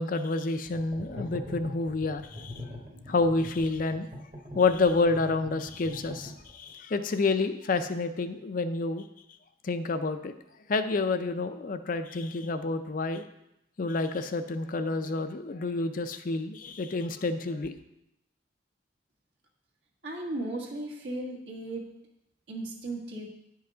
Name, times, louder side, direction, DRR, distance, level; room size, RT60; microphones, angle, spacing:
voice 1, 0.0-2.5 3.1-4.1 4.6-9.0 9.6-10.3 10.7-13.2 13.8-17.7, left 3 dB, 50° left, 9 dB, 0.5 m, -29 dB
sound 1, 0.7-6.7, left 1 dB, 30° right, 1.2 m, -43 dB
voice 2, 20.0-22.0 22.5-23.3, right 2 dB, 65° right, -2 dB, 1.6 m, -36 dB
9.9 x 5.6 x 3.8 m, 0.83 s
head